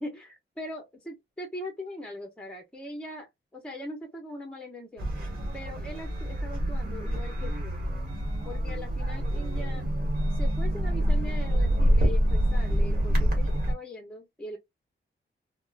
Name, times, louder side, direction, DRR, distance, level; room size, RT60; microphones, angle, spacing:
voice 1, 0.0-5.2 5.5-7.8 8.4-9.9 10.3-14.6, left 1 dB, 5° left, 0.8 m, -41 dB
sound 1, 5.0-13.7, equal, 45° right, 1.4 m, -26 dB
3.4 x 2.1 x 2.4 m
wide cardioid pair, 160°, 21 cm